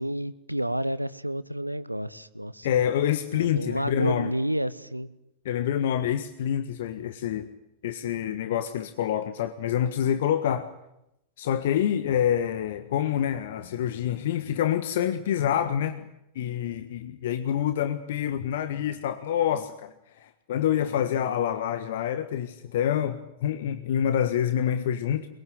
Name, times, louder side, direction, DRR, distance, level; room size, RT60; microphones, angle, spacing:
voice 1, 0.0-2.7 3.3-5.1, right 1 dB, 90° right, 17 dB, 1.0 m, -30 dB
voice 2, 2.6-4.3 5.4-7.5 7.8-10.7 11.4-16.0 16.3-19.9 20.2-25.3, left 10 dB, 55° left, 11 dB, 1.5 m, -27 dB
23.0 x 22.5 x 7.9 m, 0.84 s
figure-of-eight pair, 90°, 0 cm